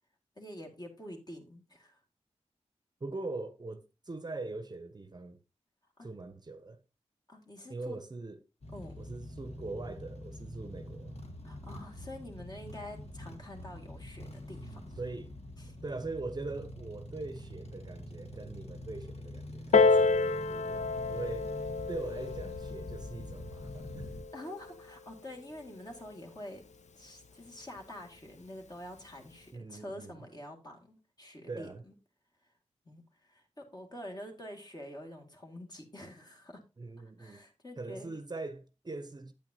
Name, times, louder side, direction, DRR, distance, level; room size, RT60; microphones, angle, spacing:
voice 1, 0.4-2.0 6.0-6.1 7.3-8.0 8.7-9.0 11.4-15.0 15.6-15.8 24.3-26.6 26.9-31.9 32.8-36.6 37.0-38.2, left 1 dB, 35° left, 1.9 m, -47 dB
voice 2, 3.0-5.4 6.0-6.8 7.7-8.4 9.0-11.1 15.0-15.3 15.8-21.5 21.9-24.2 29.5-30.2 31.5-31.8 36.8-37.4 37.8-39.3, right 3 dB, 35° right, 0.7 m, -42 dB
sound 1, 8.6-24.2, left 1 dB, 60° left, 1.4 m, -45 dB
Piano, 19.7-24.9 25.7-25.8, left 4 dB, 75° left, 0.5 m, -29 dB
9.0 x 8.6 x 2.7 m
wide cardioid pair, 100°, 12 cm